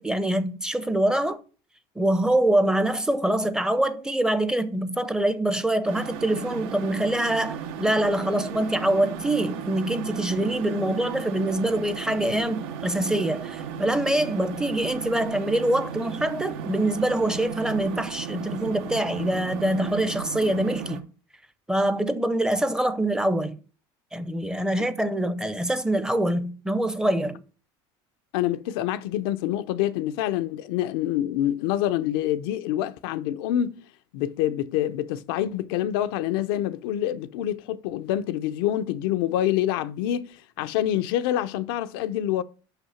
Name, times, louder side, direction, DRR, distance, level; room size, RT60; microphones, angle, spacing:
voice 1, 0.0-1.4 2.0-21.0 21.7-23.6 24.1-27.4, right 1 dB, 5° right, 0.5 m, -24 dB
sound 1, 5.8-21.0, right 8 dB, 85° right, 1.0 m, -35 dB
voice 2, 28.3-33.8 34.1-42.4, left 12 dB, 85° left, 0.5 m, -26 dB
5.8 x 5.6 x 5.6 m
cardioid pair, 145°, 12 cm